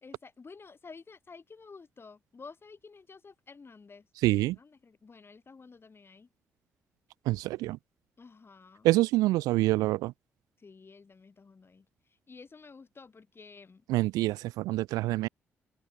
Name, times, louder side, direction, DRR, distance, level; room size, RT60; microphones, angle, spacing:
voice 1, 0.0-4.1 4.5-6.3 8.2-8.9 10.6-11.9 12.3-13.8, left 4 dB, 40° left, 2.2 m, -51 dB
voice 2, 4.2-4.6 7.3-7.8 8.8-10.1 13.9-15.3, right 18 dB, 80° right, 0.4 m, -26 dB
hypercardioid pair, 45°, 6 cm